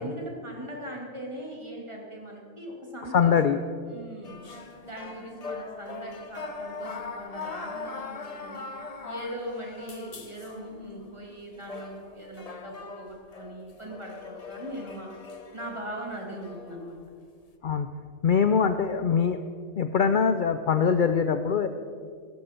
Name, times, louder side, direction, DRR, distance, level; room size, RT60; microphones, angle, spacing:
voice 1, 0.0-3.4 3.8-4.4 4.8-8.7 9.0-15.1 15.5-17.0, right 1 dB, 20° right, -1 dB, 2.5 m, -40 dB
voice 2, 3.1-3.6 17.6-17.9 18.2-19.4 19.8-21.7, left 6 dB, 65° left, 9 dB, 0.5 m, -23 dB
sound 1, 4.2-17.0, left 4 dB, 35° left, 0.8 m, -41 dB
16.5 x 13.0 x 4.4 m, 2.2 s
omnidirectional pair, 1.5 m